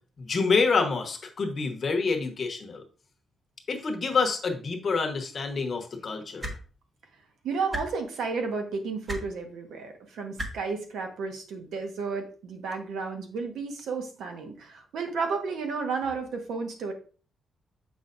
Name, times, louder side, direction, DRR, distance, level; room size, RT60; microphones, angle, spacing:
voice 1, 0.2-2.8 3.7-6.5, left 4 dB, 40° left, 4 dB, 1.1 m, -27 dB
sound 1, 6.4-6.6 7.7-7.8 9.1-9.2 10.4-10.5 11.7-11.8, equal, 20° right, 1.4 m, -32 dB
voice 2, 7.4-16.9, right 4 dB, 80° right, 4 dB, 1.3 m, -32 dB
7.5 x 5.5 x 2.6 m, 0.38 s
cardioid pair, 145°, 0 cm